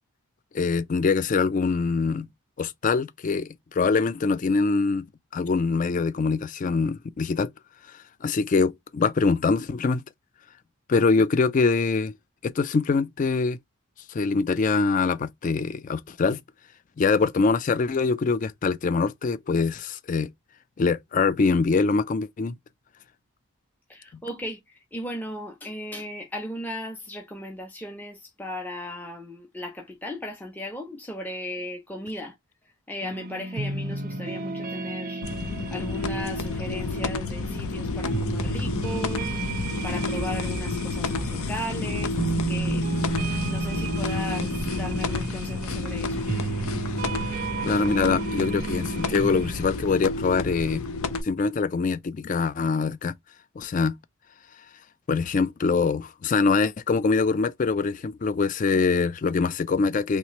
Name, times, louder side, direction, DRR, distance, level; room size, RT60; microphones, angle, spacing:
voice 1, 0.5-2.3 2.6-5.1 5.3-7.5 7.9-10.0 10.9-12.1 12.4-13.6 14.1-16.4 17.0-20.3 20.8-22.6 47.6-50.9 51.2-53.1 53.6-53.9 55.1-60.2, left 4 dB, 35° left, 0.3 m, -24 dB
voice 2, 23.9-32.3 32.9-35.2 35.7-39.3 39.8-42.9 43.5-46.2, equal, 10° left, 0.7 m, -36 dB
sound 1, 33.0-49.6, right 4 dB, 40° right, 0.4 m, -33 dB
sound 2, 35.2-51.2, left 3 dB, 80° left, 0.7 m, -30 dB
3.2 x 3.0 x 2.9 m
head